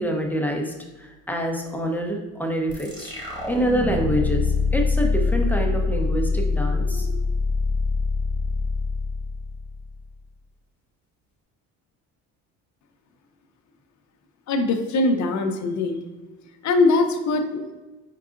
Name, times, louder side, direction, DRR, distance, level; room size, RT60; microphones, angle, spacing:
voice 1, 0.0-4.5 4.7-7.2, right 1 dB, 5° left, 1 dB, 0.6 m, -26 dB
sound 1, 2.7-10.0, left 4 dB, 10° right, 1.4 m, -24 dB
voice 2, 14.5-16.0 16.6-17.7, left 3 dB, 55° left, 5 dB, 0.6 m, -21 dB
4.7 x 3.7 x 2.4 m, 1.2 s
cardioid pair, 90°, 35 cm